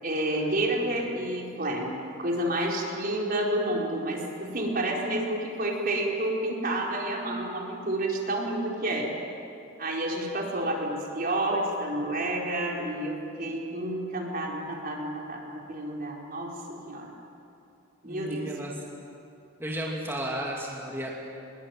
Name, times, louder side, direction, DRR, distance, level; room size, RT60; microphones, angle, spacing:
voice 1, 0.0-9.1 9.8-17.1 18.0-18.5, right 1 dB, 50° right, -1 dB, 4.6 m, -30 dB
voice 2, 18.0-18.7 19.6-21.1, right 1 dB, 15° right, -3 dB, 2.7 m, -34 dB
25.0 x 22.0 x 9.1 m, 2.7 s
head